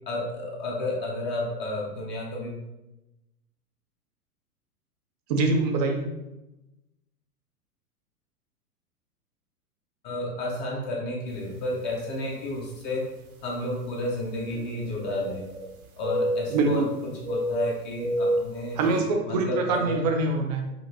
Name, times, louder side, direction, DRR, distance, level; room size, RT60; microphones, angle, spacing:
voice 1, 0.1-2.6 10.0-13.0 13.4-15.4 16.0-18.8 19.3-20.0, left 1 dB, 25° left, -2 dB, 0.6 m, -31 dB
voice 2, 5.3-6.1 16.5-16.9 18.8-20.6, right 3 dB, 30° right, 3 dB, 0.4 m, -24 dB
sound 1, 11.6-11.7 12.5-12.6 14.5-15.7 16.0-16.8 17.2-18.6, right 1 dB, 65° right, 1.0 m, -29 dB
5.3 x 2.5 x 2.6 m, 0.96 s
figure-of-eight pair, 105°, 46 cm